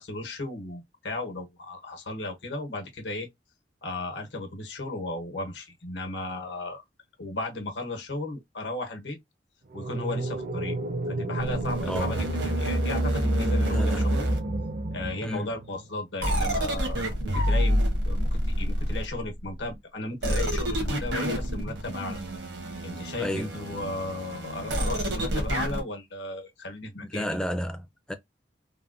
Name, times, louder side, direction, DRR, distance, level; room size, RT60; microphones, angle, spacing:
voice 1, 0.0-3.3 3.8-6.8 7.2-9.2 9.7-10.8 11.1-14.3 14.9-22.2 22.8-27.3, left 2 dB, 80° left, 1.0 m, -35 dB
sound 1, 9.7-15.9, right 2 dB, 55° right, 0.5 m, -33 dB
sound 2, 11.4-15.1 16.2-19.3 20.2-25.8, equal, 80° right, 1.1 m, -28 dB
voice 2, 13.7-14.1 15.2-15.5 23.2-23.6 27.0-28.1, equal, 5° left, 0.4 m, -32 dB
3.4 x 2.1 x 2.4 m
head